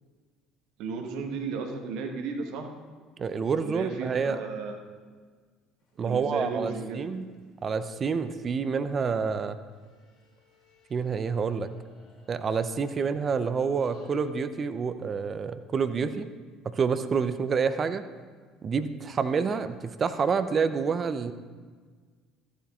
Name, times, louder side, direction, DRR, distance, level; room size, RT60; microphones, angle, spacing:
voice 1, 0.8-2.7 3.6-4.8 6.0-7.1, right 4 dB, 65° right, 4 dB, 1.3 m, -34 dB
voice 2, 3.2-4.4 6.0-7.3 7.6-9.6 10.9-11.7 12.3-16.3 16.7-18.0 18.6-21.3, right 5 dB, 40° right, 11 dB, 0.6 m, -28 dB
sound 1, 6.9-7.7 9.7-14.1, left 3 dB, 55° left, 2.7 m, -59 dB
14.0 x 11.0 x 2.5 m, 1.5 s
hypercardioid pair, 60°, 0 cm